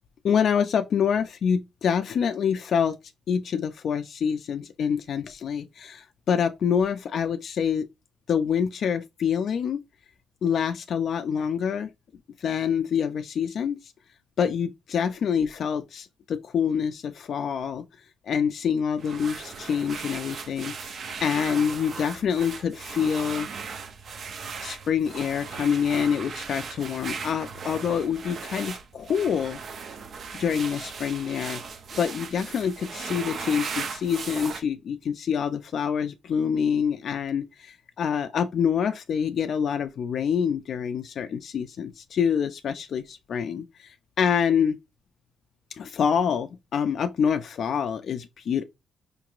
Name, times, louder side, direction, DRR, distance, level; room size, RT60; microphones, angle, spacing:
voice 1, 0.2-3.0 3.3-7.9 8.3-9.8 10.4-11.9 12.4-13.9 14.4-17.8 18.2-23.5 24.6-29.6 30.3-31.6 32.0-44.8 45.8-48.6, left 7 dB, 60° left, 0.3 m, -26 dB
sound 1, 19.0-34.6, right 5 dB, 55° right, 0.5 m, -37 dB
5.1 x 2.9 x 2.4 m
cardioid pair, 90°, 0 cm